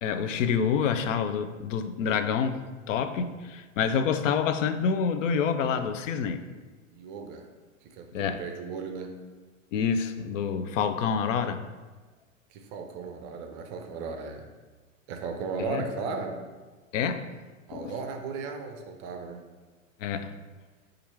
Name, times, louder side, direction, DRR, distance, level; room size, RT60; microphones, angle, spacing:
voice 1, 0.0-2.6 2.9-6.4 8.1-8.4 9.7-11.6 15.6-15.8 16.9-17.3 17.7-17.9 20.0-20.3, left 6 dB, 70° left, 9 dB, 0.5 m, -27 dB
voice 2, 6.9-7.5 7.8-9.1 12.5-14.5 15.1-16.4 17.7-19.4, right 4 dB, 35° right, 4 dB, 0.5 m, -36 dB
4.2 x 2.5 x 4.5 m, 1.3 s
hypercardioid pair, 105°, 40 cm